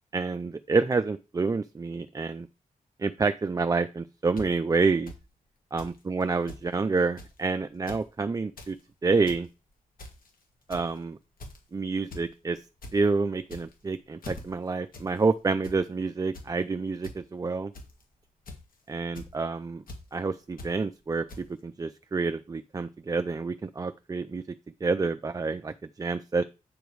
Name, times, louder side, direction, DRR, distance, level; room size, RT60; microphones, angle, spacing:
voice 1, 0.1-2.5 3.0-5.1 5.7-8.8 9.0-9.5 10.7-11.2 11.7-12.6 12.9-17.7 18.9-19.8 20.1-24.4 24.8-26.4, right 4 dB, 25° right, 10 dB, 0.4 m, -28 dB
sound 1, 4.4-4.5 5.1-5.2 5.8-6.0 6.2-6.3 6.5-6.6 7.2-7.4 7.7-8.0 8.4-8.7 9.1-9.4 10.0-10.3 10.7-11.0 11.4-11.7 12.1-12.3 12.6-12.9 13.4-13.8 14.2-14.4 14.9-15.1 15.4-15.8 16.3-16.5 17.0-17.1 17.7-18.0 18.5-18.7 19.2-19.3 19.9-20.0 20.6-20.7 21.3-21.4, left 2 dB, 80° left, 2.2 m, -42 dB
8.9 x 5.1 x 4.7 m, 0.29 s
wide cardioid pair, 135°, 14 cm